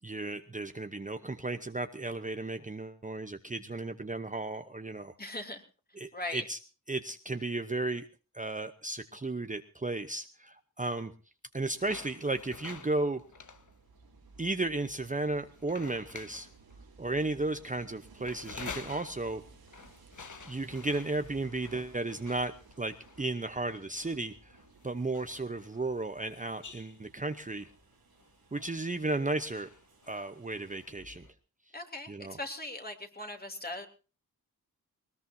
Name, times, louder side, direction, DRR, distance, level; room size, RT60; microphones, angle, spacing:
voice 1, 0.0-5.1 6.0-6.6 6.9-8.0 8.3-11.1 11.5-13.2 14.4-16.5 17.0-19.4 20.4-22.5 22.8-24.6 24.8-27.7 28.5-29.7 30.1-31.3 32.1-32.4, right 2 dB, 20° right, 9 dB, 0.9 m, -34 dB
voice 2, 5.2-5.6 6.1-6.4 31.7-33.9, left 2 dB, 25° left, 5 dB, 3.1 m, -39 dB
sound 1, 11.8-31.3, left 5 dB, 55° left, 1.4 m, -50 dB
Train, 11.8-30.8, right 4 dB, 85° right, 2.9 m, -59 dB
20.5 x 20.0 x 2.8 m, 0.34 s
wide cardioid pair, 75°, 35 cm